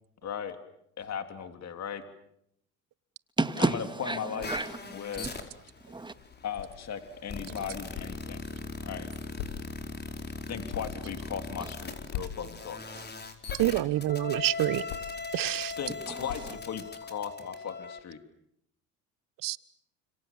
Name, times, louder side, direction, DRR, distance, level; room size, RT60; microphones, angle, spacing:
voice 1, 0.2-0.6 1.0-2.0 4.0-4.5 4.9-5.3 6.4-8.4 8.8-9.1 10.5-12.8 15.8-16.8 17.1-18.2, left 8 dB, 45° left, 3.1 m, -37 dB
voice 2, 3.4-5.0 5.3-5.4 5.8-6.1 7.6-7.7 11.6-11.7 16.1-16.6, right 2 dB, 10° right, 2.0 m, -32 dB
sound 1, 4.4-18.0, left 3 dB, 25° left, 4.8 m, -40 dB
sound 2, 6.1-16.9, left 9 dB, 80° left, 3.4 m, -45 dB
voice 3, 13.6-14.8 15.3-15.8 19.4-19.6, right 16 dB, 60° right, 1.3 m, -27 dB
30.0 x 26.5 x 7.4 m
supercardioid pair, 85°, 38 cm